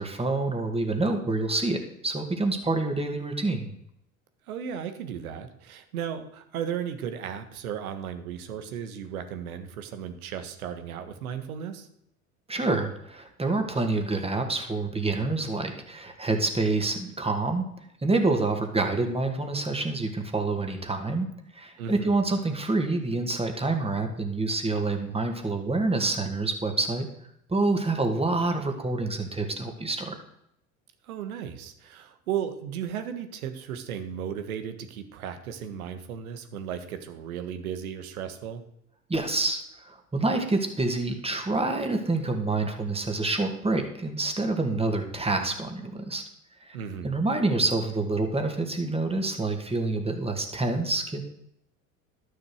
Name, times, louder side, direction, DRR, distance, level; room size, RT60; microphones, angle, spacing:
voice 1, 0.0-3.8 12.5-17.7 18.0-21.3 21.5-27.1 27.5-30.1 39.1-46.2 46.6-46.8 47.0-51.2, right 2 dB, 15° right, 5 dB, 2.2 m, -27 dB
voice 2, 4.5-11.9 21.8-22.2 31.0-38.6 46.7-47.1, right 8 dB, 75° right, 9 dB, 1.5 m, -35 dB
12.0 x 6.8 x 6.4 m, 0.75 s
hypercardioid pair, 70°, 43 cm